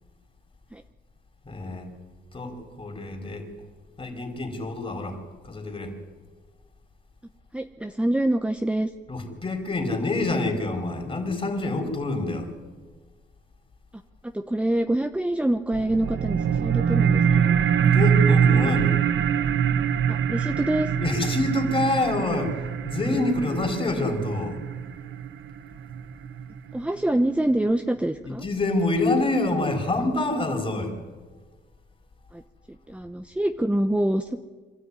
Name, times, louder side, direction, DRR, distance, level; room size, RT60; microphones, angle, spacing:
voice 1, 1.5-1.9 2.3-3.5 4.0-5.2 5.5-5.9 9.1-12.5 17.9-19.0 21.0-22.5 22.8-24.6 28.2-30.9, left 2 dB, 25° left, 4 dB, 4.3 m, -26 dB
voice 2, 7.5-8.9 14.2-17.6 20.1-20.9 26.7-28.4 32.3-32.4 32.7-34.4, right 1 dB, 5° right, 7 dB, 0.9 m, -25 dB
sound 1, 15.7-26.7, right 7 dB, 70° right, 1.1 m, -23 dB
25.5 x 13.0 x 9.7 m, 1.4 s
cardioid pair, 90°, 20 cm